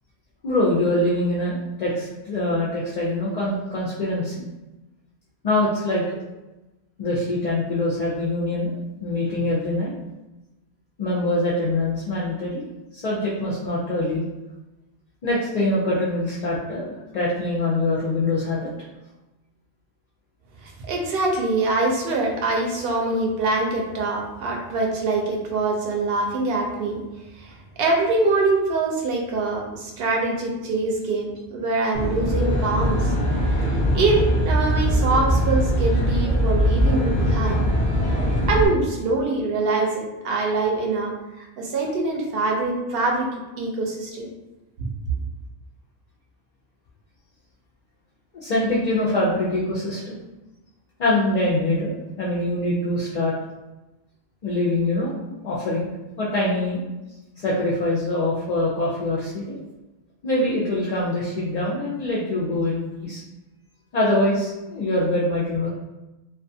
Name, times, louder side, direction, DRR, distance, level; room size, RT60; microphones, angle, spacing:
voice 1, 0.4-4.4 5.4-6.0 7.0-8.7 9.0-9.9 11.0-12.6 12.9-14.2 15.2-18.7 48.3-50.1 51.0-53.3 54.4-55.2 55.4-55.9 56.2-56.8 57.4-59.6 60.2-63.2 63.9-65.7, left 1 dB, 50° left, -6 dB, 0.5 m, -24 dB
voice 2, 20.6-27.0 27.3-33.1 33.5-37.6 38.5-44.3 44.8-44.9, right 3 dB, 65° right, 1 dB, 0.7 m, -24 dB
Aircraft, 31.9-38.7, equal, 10° left, 0.6 m, -21 dB
2.3 x 2.3 x 2.6 m, 1.0 s
omnidirectional pair, 1.1 m